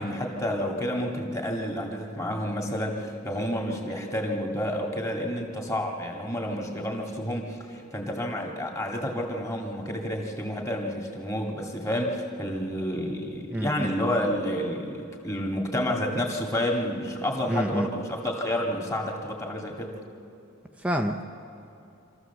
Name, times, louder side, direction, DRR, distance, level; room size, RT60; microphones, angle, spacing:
voice 1, 0.0-20.0, equal, 15° left, 0 dB, 2.1 m, -30 dB
voice 2, 13.5-13.9 17.5-17.9 20.8-21.2, equal, 5° right, 3 dB, 0.6 m, -27 dB
25.5 x 14.5 x 7.1 m, 2.7 s
head